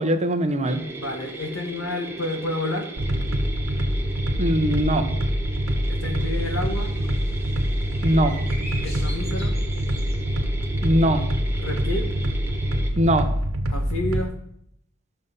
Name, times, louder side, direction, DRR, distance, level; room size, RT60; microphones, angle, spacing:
voice 1, 0.0-0.8 4.4-5.1 8.0-8.3 10.8-11.2 13.0-13.3, right 1 dB, 35° right, 7 dB, 1.0 m, -21 dB
sound 1, 0.7-12.9, right 2 dB, 10° right, 1.4 m, -37 dB
voice 2, 1.0-2.9 5.9-6.9 8.8-9.5 11.6-12.1 13.7-14.3, left 1 dB, 65° left, 3 dB, 2.1 m, -30 dB
sound 2, 3.0-14.2, equal, 75° right, 1.3 m, -25 dB
sound 3, 6.2-13.5, equal, 35° left, 5.5 m, -42 dB
13.0 x 6.8 x 5.5 m, 0.72 s
head